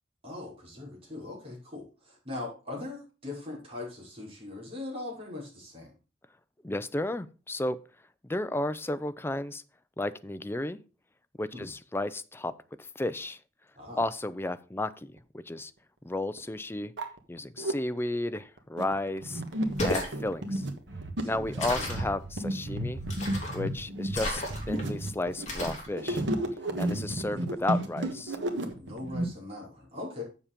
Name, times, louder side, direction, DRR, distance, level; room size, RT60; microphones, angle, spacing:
voice 1, 0.2-5.9 11.5-11.7 13.7-14.0 21.2-21.4 21.8-21.9 27.3-27.5 28.8-30.2, left 2 dB, 35° right, -3 dB, 4.9 m, -40 dB
voice 2, 6.6-7.8 8.2-9.6 10.0-10.8 11.4-12.5 13.0-13.4 14.0-15.7 16.0-16.9 17.3-19.4 19.8-20.7 21.2-23.0 23.5-26.2 26.8-28.4, left 2 dB, 15° left, 12 dB, 0.5 m, -33 dB
sound 1, 15.6-15.7 16.4-16.5 16.8-17.7 18.4-29.2, right 1 dB, 80° right, 1.4 m, -32 dB
sound 2, 19.6-20.1 21.6-22.1 23.1-23.6 24.1-24.8 25.5-25.9, left 1 dB, 40° left, 3.6 m, -32 dB
7.3 x 7.2 x 5.1 m, 0.34 s
head